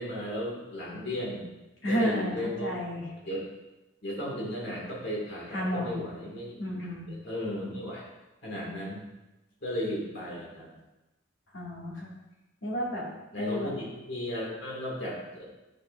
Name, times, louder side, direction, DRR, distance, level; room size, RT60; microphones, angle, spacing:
voice 1, 0.0-1.5 1.9-2.7 3.2-3.4 4.0-8.0 8.4-9.0 9.6-10.7 13.3-15.4, equal, 60° left, -4 dB, 2.2 m, -35 dB
voice 2, 1.8-3.1 5.5-6.0 6.6-7.1 11.5-12.1 12.6-13.1 13.4-13.7, equal, 80° left, -5 dB, 2.3 m, -31 dB
9.2 x 5.4 x 2.6 m, 1.0 s
head